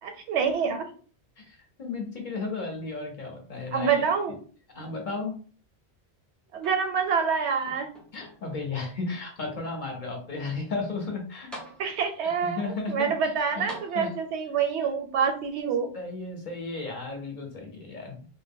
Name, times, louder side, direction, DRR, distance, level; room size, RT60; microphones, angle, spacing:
voice 1, 0.0-0.8 3.7-4.3 6.5-7.9 11.8-12.6 12.9-15.9, right 6 dB, 80° right, 5 dB, 0.9 m, -26 dB
voice 2, 1.4-4.4 4.7-5.3 8.1-11.5 12.2-13.7 13.9-14.1 15.9-18.3, left 3 dB, 50° left, 2 dB, 0.7 m, -34 dB
sound 1, 6.6-7.3 7.7-8.7 9.4-9.5 11.0-11.1 11.5-12.3 13.7-14.5 15.6-15.7, equal, ahead, 0.3 m, -46 dB
2.1 x 2.1 x 3.4 m, 0.42 s
omnidirectional pair, 1.1 m